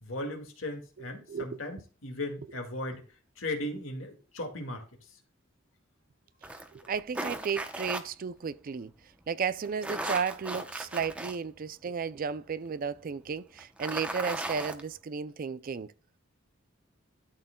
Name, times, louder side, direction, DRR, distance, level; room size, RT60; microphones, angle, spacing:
voice 1, 0.0-3.0 3.4-4.8, left 1 dB, 75° left, 2.1 m, -37 dB
voice 2, 1.3-1.6 6.7-8.9 9.3-15.9, right 6 dB, 45° right, 0.4 m, -33 dB
sound 1, 6.4-8.0 9.7-11.4 11.9-12.0 13.6-14.8, right 1 dB, 5° right, 0.8 m, -36 dB
12.5 x 6.4 x 2.2 m
head